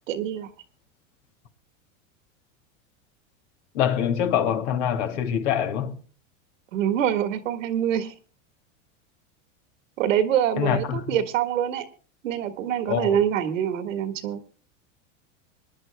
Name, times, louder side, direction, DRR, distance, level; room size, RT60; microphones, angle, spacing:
voice 1, 0.1-0.5 6.7-8.1 10.0-11.9 12.2-14.4, right 10 dB, 80° right, 1.8 m, -25 dB
voice 2, 3.7-5.9 10.6-11.0 12.9-13.2, left 9 dB, 65° left, 2.5 m, -24 dB
25.0 x 10.5 x 2.2 m
hypercardioid pair, 110°, 38 cm